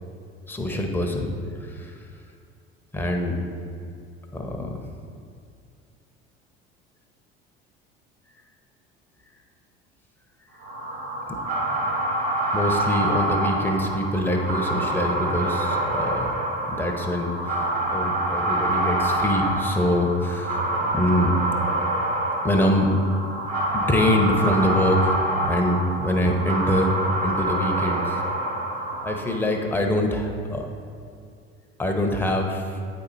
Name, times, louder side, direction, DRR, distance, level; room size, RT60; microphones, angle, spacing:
voice 1, 0.5-1.3 1.6-2.0 2.9-3.4 4.3-4.7 11.3-11.4 12.5-16.3 16.7-20.6 20.9-21.3 22.4-22.9 23.7-25.2 25.5-26.9 27.2-28.2 29.0-30.7 31.8-32.8, left 1 dB, 5° left, 2 dB, 0.9 m, -24 dB
sound 1, 10.6-29.5, right 1 dB, 55° right, 1.7 m, -26 dB
8.4 x 4.5 x 4.1 m, 2.4 s
hypercardioid pair, 70°, 31 cm